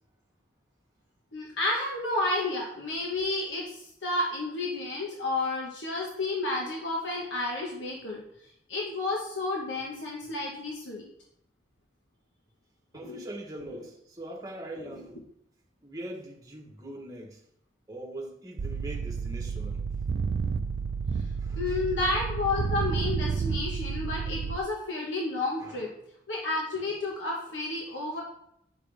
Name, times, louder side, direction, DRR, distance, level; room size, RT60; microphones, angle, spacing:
voice 1, 1.3-8.2 8.7-11.0 13.0-13.2 21.6-25.9 26.3-28.2, left 2 dB, 85° left, 1.3 m, -31 dB
voice 2, 12.9-15.2 15.8-17.4 17.9-19.9 21.4-21.8 25.6-25.9, right 1 dB, 20° right, 1.2 m, -42 dB
sound 1, 18.6-24.6, right 5 dB, 65° right, 0.4 m, -31 dB
9.1 x 5.9 x 3.4 m
head